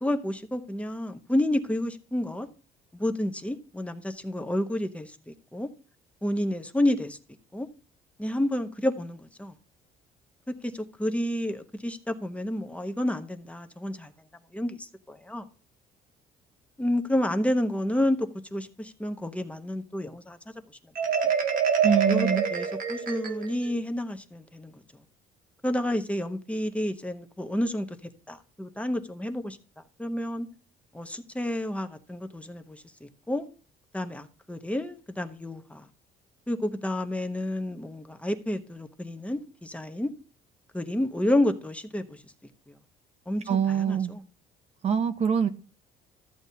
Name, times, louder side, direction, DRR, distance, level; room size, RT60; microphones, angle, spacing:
voice 1, 0.0-2.5 2.9-5.7 6.2-7.2 7.5-7.7 8.2-9.6 10.6-14.1 14.5-15.4 16.8-20.4 22.1-24.8 25.6-28.0 28.3-29.6 30.0-30.5 30.9-33.5 33.9-35.9 36.5-40.1 40.7-42.2 43.3-44.2, left 1 dB, 5° left, 0.8 m, -30 dB
Marimba xylophone, 21.0-23.7, right 6 dB, 55° right, 1.3 m, -26 dB
voice 2, 21.8-22.4 43.5-44.1 44.8-45.5, right 8 dB, 40° right, 0.6 m, -24 dB
13.5 x 7.8 x 2.8 m
cardioid pair, 110°, 17 cm